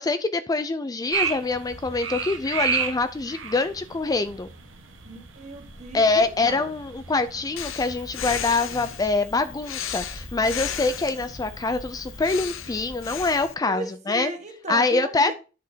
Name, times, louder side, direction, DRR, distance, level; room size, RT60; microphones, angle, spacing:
voice 1, 0.0-4.5 5.9-14.3 14.7-15.3, left 3 dB, 20° left, 11 dB, 0.4 m, -25 dB
sound 1, 1.1-13.5, right 6 dB, 70° right, 1.3 m, -35 dB
voice 2, 5.0-6.7 13.7-15.3, right 2 dB, 35° right, 5 dB, 1.5 m, -36 dB
Breathing, 7.6-13.5, left 8 dB, 85° left, 0.7 m, -35 dB
10.0 x 6.3 x 2.8 m, 0.33 s
head